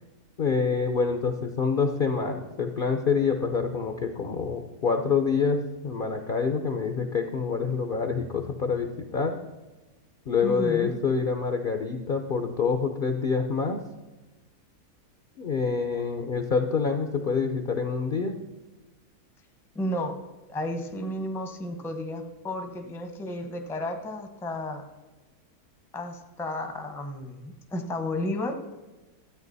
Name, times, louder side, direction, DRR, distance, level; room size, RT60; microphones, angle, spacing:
voice 1, 0.4-9.4 10.3-13.8 15.4-18.3, left 5 dB, 50° left, 5 dB, 0.6 m, -26 dB
voice 2, 10.4-11.0 19.7-20.2 20.5-24.8 25.9-28.6, left 1 dB, ahead, 6 dB, 0.6 m, -32 dB
13.0 x 8.8 x 4.0 m, 1.2 s
omnidirectional pair, 1.6 m